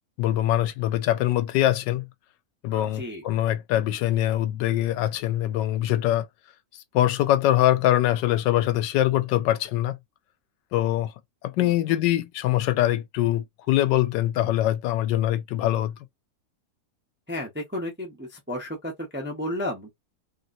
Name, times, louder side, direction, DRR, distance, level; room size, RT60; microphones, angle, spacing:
voice 1, 0.2-2.0 2.6-6.3 6.9-10.0 10.7-11.1 11.4-15.9, left 13 dB, 80° left, 1.2 m, -23 dB
voice 2, 2.9-3.2 11.6-12.0 17.3-19.9, left 1 dB, 10° right, 0.5 m, -33 dB
3.0 x 2.7 x 2.5 m
omnidirectional pair, 1.9 m